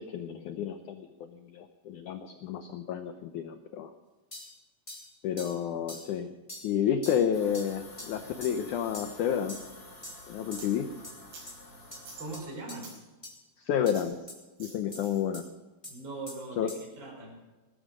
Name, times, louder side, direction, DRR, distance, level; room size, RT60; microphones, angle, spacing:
voice 1, 0.0-3.9 5.2-6.3 6.6-9.6 10.3-10.9 13.6-14.2 14.6-15.5 16.6-16.7, left 8 dB, 85° left, 8 dB, 1.7 m, -30 dB
sound 1, 4.3-4.5 4.9-5.1 5.4-5.6 5.9-6.1 6.5-6.7 7.0-7.2 7.5-7.7 8.0-8.1 8.4-8.6 8.9-9.1 9.5-9.7 10.0-10.2 10.5-10.7 11.0-11.2 11.5-11.6 11.9-12.0 12.3-12.4 12.7-12.8 13.2-13.3 13.9-14.0 14.3-14.4 14.9-15.0 15.3-15.4 15.8-16.0 16.3-16.4 16.7-16.8, left 1 dB, 10° left, 3.4 m, -43 dB
sound 2, 7.3-12.4, left 2 dB, 35° left, 4.0 m, -50 dB
sound 3, 10.6-10.7 11.3-11.5 12.0-13.0 13.8-14.2 14.6-15.2, right 4 dB, 85° right, 7.0 m, -48 dB
voice 2, 12.2-12.9 15.9-17.4, right 3 dB, 25° right, 0 dB, 5.5 m, -41 dB
20.0 x 13.5 x 5.1 m, 1.2 s
omnidirectional pair, 4.6 m